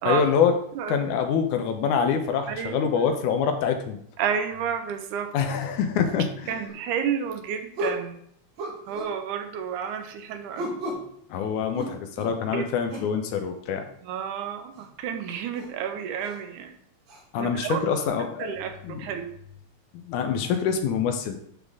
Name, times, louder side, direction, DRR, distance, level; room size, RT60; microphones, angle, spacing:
voice 1, 0.1-0.5 0.9-4.0 5.3-6.6 11.3-13.8 17.3-18.5 18.8-19.1 19.9-21.4, left 7 dB, 85° left, 6 dB, 2.3 m, -25 dB
voice 2, 2.5-3.1 4.2-5.3 6.5-8.2 8.9-10.7 12.5-12.7 14.0-16.7 17.4-17.8 18.4-19.3, right 8 dB, 90° right, 7 dB, 2.3 m, -30 dB
sound 1, 6.7-6.8 7.8-8.1 8.6-9.2 10.6-11.1 11.7-12.4 12.9-13.1 14.8-14.9 15.6-15.7 16.2-16.4 17.1-17.2 17.9-18.1, equal, 65° right, 2.8 m, -34 dB
11.5 x 4.0 x 3.6 m, 0.66 s
omnidirectional pair, 3.4 m